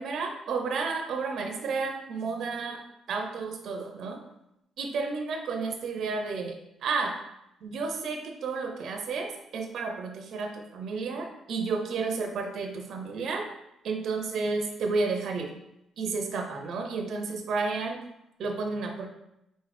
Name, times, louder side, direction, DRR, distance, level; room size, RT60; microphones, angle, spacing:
voice 1, 0.0-2.8 3.1-4.2 4.8-6.6 6.8-7.1 7.6-13.4 13.8-15.5 16.0-18.0 18.4-19.1, right 4 dB, 70° right, 3 dB, 0.6 m, -31 dB
3.8 x 3.7 x 3.3 m, 0.84 s
cardioid pair, 90°, 0 cm